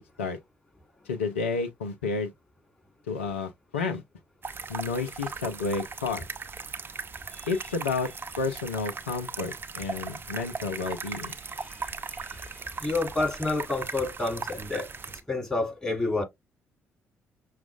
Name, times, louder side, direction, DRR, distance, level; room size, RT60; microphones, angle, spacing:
voice 1, 1.1-2.3 3.1-4.0 4.7-6.2 7.5-8.1 8.4-11.4, left 4 dB, 85° left, 0.5 m, -31 dB
sound 1, 4.4-15.2, right 5 dB, 35° right, 0.6 m, -38 dB
voice 2, 11.6-16.2, left 2 dB, 10° left, 3.1 m, -30 dB
5.9 x 2.4 x 2.3 m
figure-of-eight pair, 45°, 6 cm